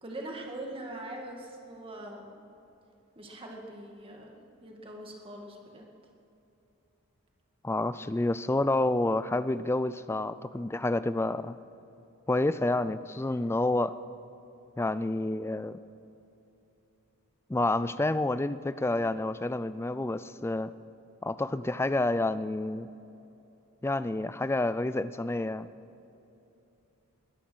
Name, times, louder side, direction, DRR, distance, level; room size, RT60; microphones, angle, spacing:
voice 1, 0.0-2.3 3.2-5.9, right 1 dB, 25° right, 0 dB, 2.0 m, -42 dB
voice 2, 7.6-11.6 12.3-14.0 14.8-15.8 17.5-20.7 21.2-22.9 23.8-25.7, left 2 dB, 10° left, 14 dB, 0.3 m, -29 dB
21.5 x 10.0 x 6.2 m, 2.9 s
head